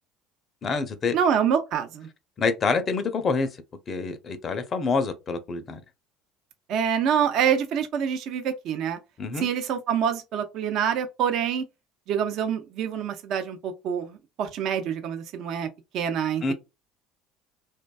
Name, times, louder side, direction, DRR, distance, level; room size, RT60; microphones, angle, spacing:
voice 1, 0.6-1.2 2.4-3.5 3.9-5.8 9.2-9.5 16.4-16.5, left 4 dB, 40° left, 0.4 m, -26 dB
voice 2, 1.1-2.1 6.7-9.0 9.4-11.6 12.1-15.7 15.9-16.5, right 8 dB, 60° right, 0.3 m, -26 dB
2.5 x 2.2 x 2.2 m
hypercardioid pair, 75°, 0 cm